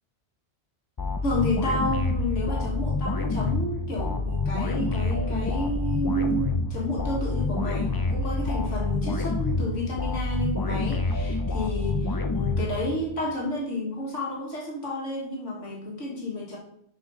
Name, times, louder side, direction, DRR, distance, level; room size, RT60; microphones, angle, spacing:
sound 1, 1.0-13.2, left 3 dB, 35° left, 0.3 m, -27 dB
voice 1, 1.2-16.6, left 1 dB, 85° left, -3 dB, 1.9 m, -31 dB
7.2 x 4.4 x 5.2 m, 0.71 s
omnidirectional pair, 1.2 m